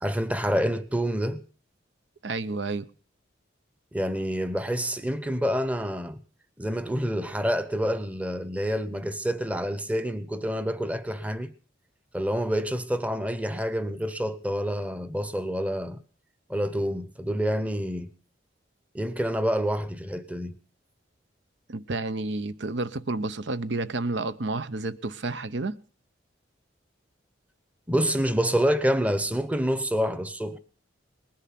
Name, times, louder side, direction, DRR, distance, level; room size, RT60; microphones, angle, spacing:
voice 1, 0.0-1.4 3.9-6.2 6.6-11.5 12.1-16.0 16.5-18.1 18.9-20.6 27.9-30.6, equal, 5° right, 0.8 m, -27 dB
voice 2, 2.2-2.9 21.7-25.8, right 3 dB, 70° right, 0.8 m, -30 dB
19.5 x 10.5 x 5.9 m
head